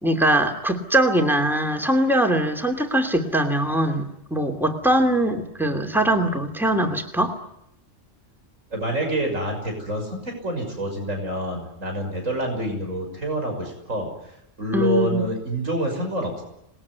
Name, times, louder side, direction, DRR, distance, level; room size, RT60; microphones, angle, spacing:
voice 1, 0.0-7.3 14.7-15.3, right 1 dB, ahead, 4 dB, 2.8 m, -22 dB
voice 2, 8.7-14.1 14.6-16.4, right 1 dB, 90° right, 3 dB, 6.5 m, -27 dB
27.0 x 20.5 x 9.7 m, 0.82 s
omnidirectional pair, 1.3 m